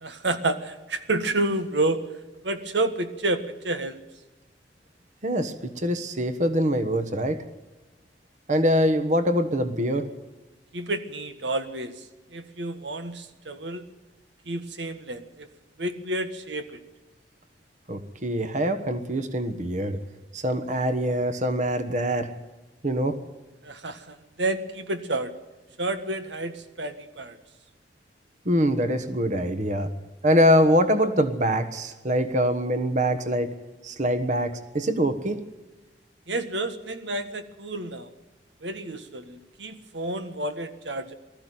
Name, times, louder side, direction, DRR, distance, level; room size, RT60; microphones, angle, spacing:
voice 1, 0.0-2.0 2.4-4.0 10.7-12.0 12.3-13.8 14.4-15.5 15.8-16.8 23.6-25.3 25.8-27.4 36.3-38.1 38.6-41.1, right 2 dB, 90° right, 9 dB, 1.6 m, -30 dB
voice 2, 5.2-7.4 8.5-10.1 17.9-20.0 20.3-22.3 22.8-23.2 28.4-29.9 30.2-33.5 33.8-35.4, equal, 45° right, 10 dB, 1.3 m, -24 dB
20.0 x 14.0 x 9.3 m, 1.1 s
head